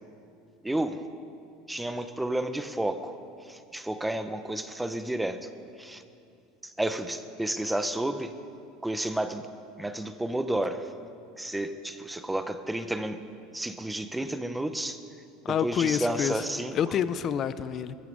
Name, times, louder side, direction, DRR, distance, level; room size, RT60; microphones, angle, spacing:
voice 1, 0.6-1.0 1.7-3.2 3.4-5.5 5.8-6.0 6.6-8.3 8.8-9.5 9.8-10.9 11.4-13.3 13.5-15.0 15.5-16.8, right 1 dB, 5° right, 10 dB, 0.7 m, -31 dB
voice 2, 15.4-16.5 16.7-17.9, left 8 dB, 35° left, 14 dB, 0.6 m, -28 dB
18.0 x 14.5 x 5.4 m, 2.5 s
supercardioid pair, 140°, 0 cm